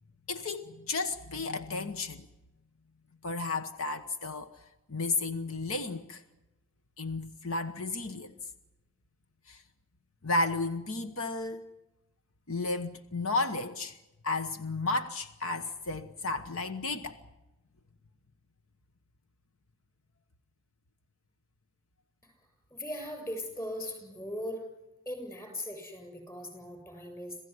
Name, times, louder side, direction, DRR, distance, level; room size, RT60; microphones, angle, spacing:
voice 1, 0.3-2.3 3.2-6.2 7.0-8.3 9.5-9.6 10.2-11.7 12.5-14.0 14.2-17.2, left 3 dB, 70° left, 1.2 m, -33 dB
voice 2, 22.7-24.6 25.1-27.4, left 1 dB, 15° left, 7.3 m, -39 dB
27.0 x 16.0 x 9.7 m
head